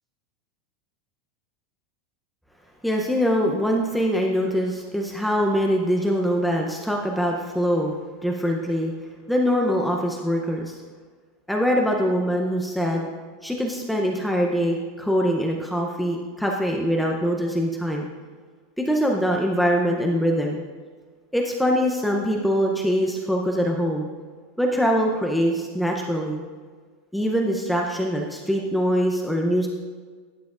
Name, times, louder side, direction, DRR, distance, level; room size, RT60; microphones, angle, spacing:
voice 1, 2.8-7.9 8.2-8.9 9.3-10.8 11.5-13.1 13.4-18.1 18.8-20.6 21.3-24.1 24.6-26.4 27.1-29.7, equal, ahead, 0 dB, 0.6 m, -23 dB
11.5 x 7.5 x 2.4 m, 1.5 s
supercardioid pair, 155°, 0 cm